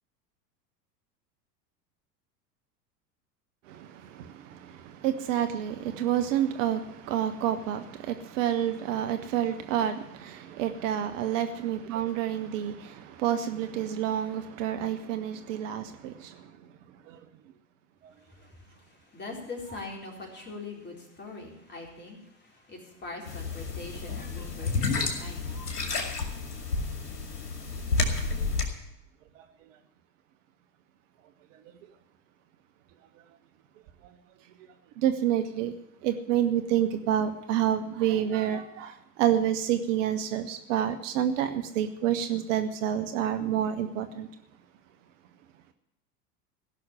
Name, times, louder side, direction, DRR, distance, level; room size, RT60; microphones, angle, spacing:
voice 1, 3.7-16.3 17.1-17.2 35.0-35.7 36.0-44.3, right 10 dB, 50° right, 8 dB, 1.0 m, -28 dB
voice 2, 18.2-27.1, left 3 dB, 20° left, 0 dB, 4.0 m, -43 dB
sound 1, 23.3-28.7, left 3 dB, 70° left, 2.5 m, -30 dB
16.0 x 6.2 x 10.0 m, 0.81 s
figure-of-eight pair, 80°, 48 cm